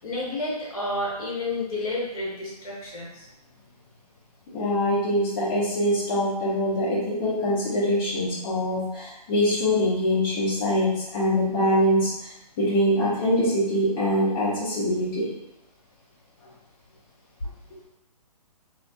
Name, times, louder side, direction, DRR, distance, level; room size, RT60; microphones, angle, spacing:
voice 1, 0.0-3.3 17.4-17.5, left 2 dB, 60° left, -5 dB, 1.1 m, -30 dB
voice 2, 4.5-12.3 12.6-15.3, equal, 30° left, -9 dB, 0.7 m, -24 dB
2.5 x 2.4 x 2.2 m, 0.87 s
hypercardioid pair, 140°, 21 cm